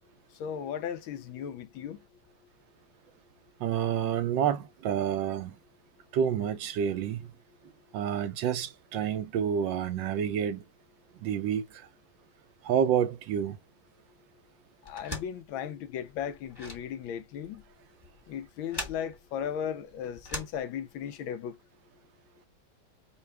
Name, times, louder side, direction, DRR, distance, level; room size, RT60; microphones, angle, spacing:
voice 1, 0.4-2.0 14.9-17.6 18.3-21.6, left 8 dB, 75° left, 1.4 m, -36 dB
voice 2, 3.6-5.6 6.1-7.3 7.9-10.6 11.2-11.9 12.6-13.6, right 8 dB, 75° right, 1.2 m, -29 dB
sound 1, 14.8-21.2, left 2 dB, 15° left, 1.1 m, -43 dB
5.6 x 2.3 x 3.3 m
omnidirectional pair, 2.3 m